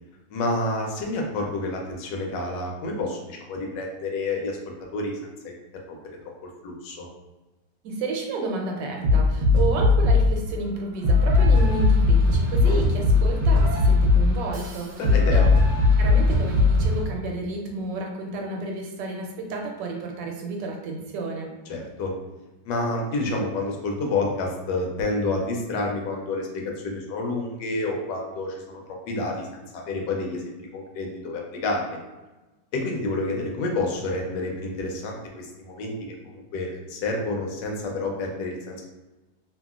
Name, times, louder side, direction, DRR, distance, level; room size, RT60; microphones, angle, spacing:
voice 1, 0.3-4.6 4.9-5.5 5.9-6.0 6.6-7.1 12.6-12.8 15.0-15.5 21.7-22.1 22.6-30.4 30.7-31.8 32.7-38.8, left 2 dB, 90° left, 1 dB, 1.3 m, -29 dB
voice 2, 7.8-15.0 15.3-15.4 16.0-21.5, right 3 dB, 90° right, 1 dB, 1.3 m, -31 dB
sound 1, 9.0-10.3 11.0-17.0, left 3 dB, 65° right, 0.8 m, -19 dB
2.8 x 2.7 x 2.3 m, 1.1 s
omnidirectional pair, 1.8 m